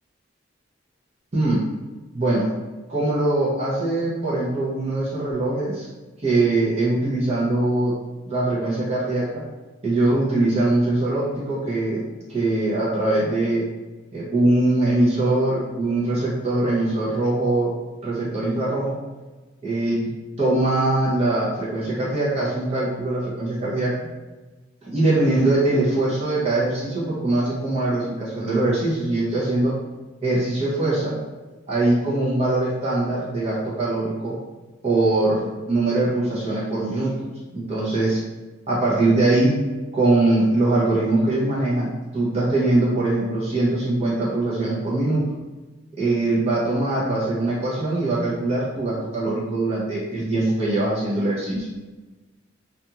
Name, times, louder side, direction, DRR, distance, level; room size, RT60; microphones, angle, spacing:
voice 1, 1.3-1.7 2.1-2.5 2.9-5.9 6.2-7.9 8.2-9.4 9.8-12.0 12.3-13.6 14.1-17.7 18.0-19.0 19.6-20.1 20.4-23.9 24.8-29.7 30.2-31.2 31.7-34.4 34.8-37.2 37.5-38.2 38.7-39.6 39.9-45.2 46.0-51.7, right 2 dB, 35° right, -7 dB, 0.7 m, -22 dB
2.5 x 2.3 x 2.8 m, 1.2 s
head